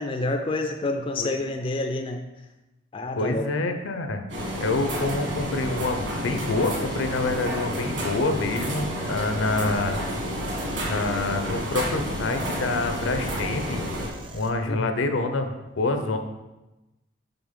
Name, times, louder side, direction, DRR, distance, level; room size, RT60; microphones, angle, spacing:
voice 1, 0.0-2.2 2.9-3.5 14.7-14.9, left 2 dB, 25° left, 4 dB, 0.4 m, -28 dB
voice 2, 3.2-4.2 4.6-10.0 10.8-13.8 14.3-15.5 15.8-16.2, left 2 dB, 80° left, 6 dB, 0.7 m, -27 dB
sound 1, 4.3-14.1, equal, 60° right, 1.7 m, -30 dB
sound 2, 9.4-14.5, right 1 dB, 25° right, 0.6 m, -42 dB
6.0 x 3.9 x 5.2 m, 1.0 s
head